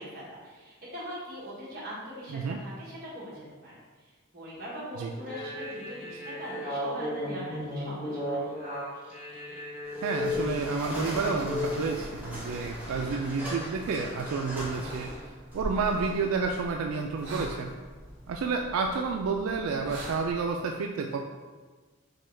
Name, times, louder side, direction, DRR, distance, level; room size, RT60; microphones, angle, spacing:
voice 1, 0.0-8.5, equal, 45° right, -7 dB, 1.3 m, -41 dB
sound 1, 5.2-11.9, left 1 dB, 35° left, 1.1 m, -34 dB
sound 2, 9.8-20.3, equal, 5° right, 0.8 m, -41 dB
voice 2, 10.0-15.1 15.5-17.7 18.3-21.2, right 4 dB, 85° right, 2 dB, 0.3 m, -30 dB
sound 3, 12.8-20.5, right 1 dB, 60° right, 0.8 m, -46 dB
6.3 x 2.2 x 3.3 m, 1.4 s
head